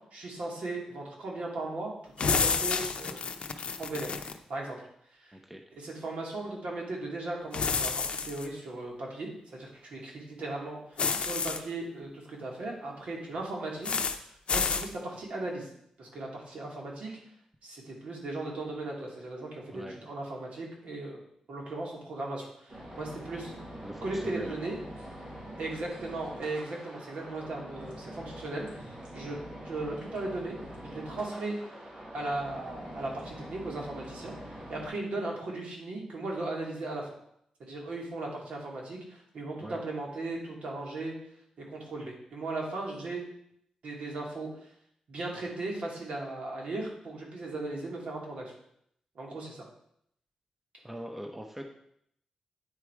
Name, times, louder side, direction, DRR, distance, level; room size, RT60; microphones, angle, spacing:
voice 1, 0.1-3.3 3.8-4.2 4.5-4.9 5.2-5.3 5.7-14.0 14.3-15.7 16.0-17.1 17.6-21.2 21.5-23.5 24.0-24.8 25.6-29.4 29.6-30.6 30.8-31.6 32.1-34.3 34.7-37.1 37.6-41.1 41.6-43.2 43.8-44.5 45.1-48.5 49.2-49.7, right 2 dB, 75° right, -2 dB, 2.4 m, -37 dB
sound 1, 2.2-4.4 7.5-8.5 11.0-11.6 13.8-14.2 14.5-14.9, left 5 dB, 60° left, 0.6 m, -29 dB
sound 2, 22.7-34.9, equal, 55° right, 2.9 m, -44 dB
voice 2, 23.8-24.5 39.6-39.8 50.8-51.7, equal, 10° right, 4 dB, 0.8 m, -41 dB
8.9 x 4.9 x 4.8 m, 0.71 s
wide cardioid pair, 105°, 2 cm